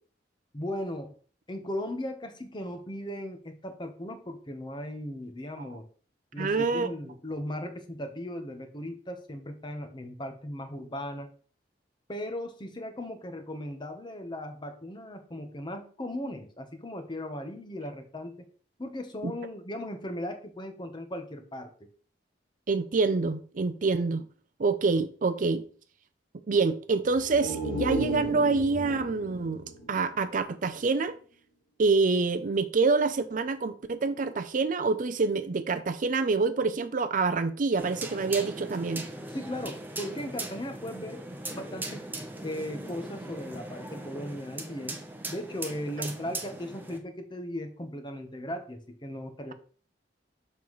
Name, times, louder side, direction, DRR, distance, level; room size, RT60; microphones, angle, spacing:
voice 1, 0.5-1.1 1.5-5.9 6.3-11.3 12.1-18.5 18.8-21.9 39.3-41.2 41.5-42.1 42.4-45.0 45.3-49.5, left 1 dB, 25° left, 1.0 m, -37 dB
voice 2, 6.4-6.9 19.2-19.3 22.7-24.2 24.6-25.6 26.5-31.2 31.8-39.1, right 4 dB, 50° right, 0.5 m, -26 dB
sound 1, 27.1-30.8 31.2-31.3, right 2 dB, 50° left, 2.4 m, -35 dB
sound 2, 37.8-47.0, right 2 dB, 10° right, 0.8 m, -39 dB
7.1 x 5.5 x 3.1 m
head